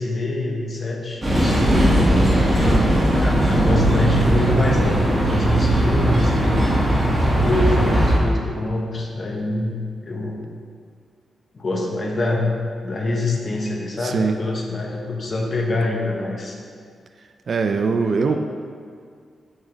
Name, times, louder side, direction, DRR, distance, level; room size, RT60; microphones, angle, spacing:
voice 1, 0.0-2.2 3.1-6.6 7.3-10.4 11.5-12.5 12.8-16.6 18.1-18.4, left 2 dB, 35° left, 0 dB, 1.0 m, -25 dB
sound 1, 1.2-8.2, right 1 dB, 15° right, 1.5 m, -18 dB
voice 2, 2.6-3.1 14.0-14.4 17.5-18.4, right 4 dB, 45° right, 6 dB, 0.4 m, -22 dB
6.5 x 6.0 x 4.5 m, 2.1 s
wide cardioid pair, 160°, 0 cm